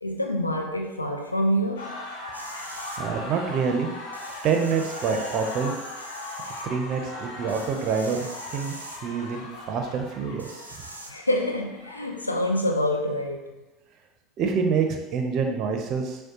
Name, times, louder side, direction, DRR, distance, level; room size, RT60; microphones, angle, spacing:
voice 1, 0.0-2.0 11.1-13.6, equal, 90° left, 0.4 m, -26 dB
sound 1, 1.8-12.5, left 2 dB, 70° left, 0.8 m, -39 dB
sound 2, 2.3-3.0 4.1-6.6 7.5-9.0 10.4-11.1, right 1 dB, 90° right, 0.4 m, -43 dB
voice 2, 3.0-3.9 4.4-5.7 6.6-8.3 8.5-8.7 9.0-10.6 14.4-16.2, right 5 dB, 50° right, 0.6 m, -26 dB
6.4 x 2.2 x 2.9 m
figure-of-eight pair, 70°, 0 cm